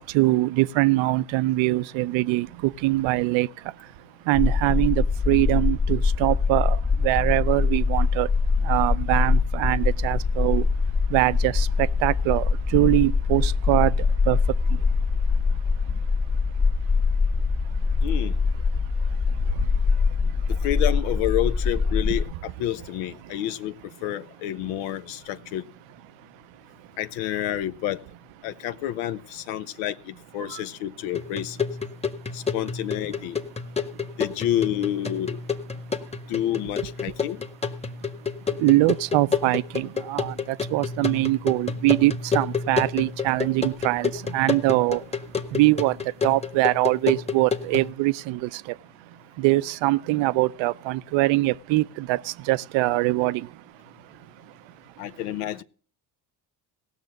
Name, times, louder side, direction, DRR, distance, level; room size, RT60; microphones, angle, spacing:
voice 1, 0.0-3.5 4.3-6.8 7.0-8.3 8.6-10.6 11.1-12.5 12.7-13.9 14.3-14.4 30.5-30.6 38.6-45.0 45.5-46.0 46.2-48.6 49.4-53.5, right 19 dB, 75° right, 0.6 m, -23 dB
sound 1, 4.3-22.2, left 4 dB, 30° left, 1.4 m, -23 dB
voice 2, 18.0-18.3 20.6-23.7 24.0-25.6 27.0-28.0 28.4-31.6 32.3-33.4 34.2-35.4 36.3-37.4 55.0-55.6, left 12 dB, 85° left, 0.7 m, -29 dB
sound 2, 31.1-47.9, left 5 dB, 15° left, 1.1 m, -30 dB
16.5 x 6.1 x 6.5 m
supercardioid pair, 65°, 46 cm